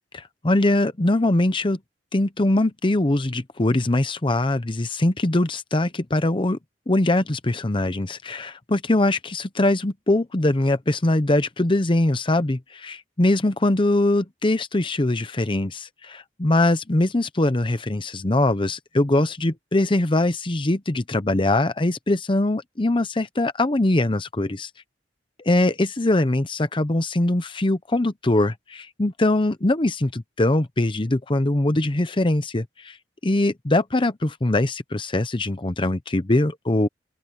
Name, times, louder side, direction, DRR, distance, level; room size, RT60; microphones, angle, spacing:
voice 1, 0.1-1.8 2.1-6.6 6.9-24.7 25.4-33.0 33.2-36.9, left 1 dB, 30° left, 0.8 m, -22 dB
open air
head